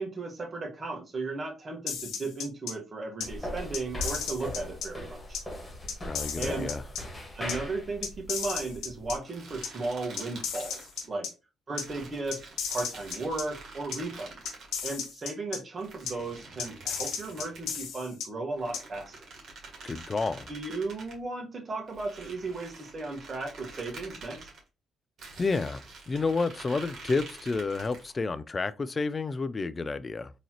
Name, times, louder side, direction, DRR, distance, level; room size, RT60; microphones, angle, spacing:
voice 1, 0.0-5.4 6.4-6.7 7.3-11.3 11.7-14.3 14.8-19.1 20.5-24.5, right 3 dB, 40° right, 1.3 m, -35 dB
sound 1, 1.9-2.7 3.2-3.3 3.7-4.9 5.3-5.4 5.9-7.0 7.5-7.6 8.0-9.1 9.6-9.7 10.2-11.3 11.8-11.9 12.3-13.4 13.9-14.0 14.4-15.6 16.1-16.2 16.6-18.3 18.7-18.8, left 7 dB, 75° left, 0.8 m, -34 dB
sound 2, 3.2-9.2, left 1 dB, 15° left, 1.7 m, -39 dB
voice 2, 6.0-6.8 19.8-20.5 25.4-25.8 26.1-30.3, left 4 dB, 35° left, 0.4 m, -30 dB
sound 3, 9.2-11.1 11.7-15.1 15.8-17.9 18.5-21.2 21.9-24.6 25.2-28.2, right 3 dB, 60° right, 1.7 m, -47 dB
3.8 x 3.0 x 2.9 m
supercardioid pair, 55°, 0 cm